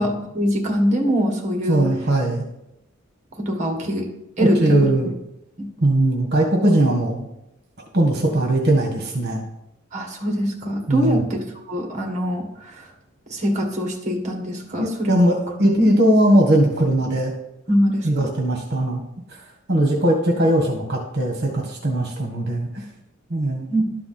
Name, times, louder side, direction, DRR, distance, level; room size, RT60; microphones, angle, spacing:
voice 1, 0.0-1.9 3.4-4.1 4.4-4.8 5.6-5.7 9.9-12.9 13.3-15.2 15.6-15.9 17.7-18.3 23.7-23.8, equal, 35° right, 2 dB, 1.8 m, -23 dB
voice 2, 1.7-2.4 4.4-5.1 5.8-7.3 7.9-9.4 10.9-11.2 14.8-17.3 18.0-19.0 19.3-19.4 19.7-22.8 23.3-23.7, right 1 dB, 55° right, 0 dB, 1.6 m, -19 dB
12.0 x 4.8 x 6.0 m, 0.85 s
head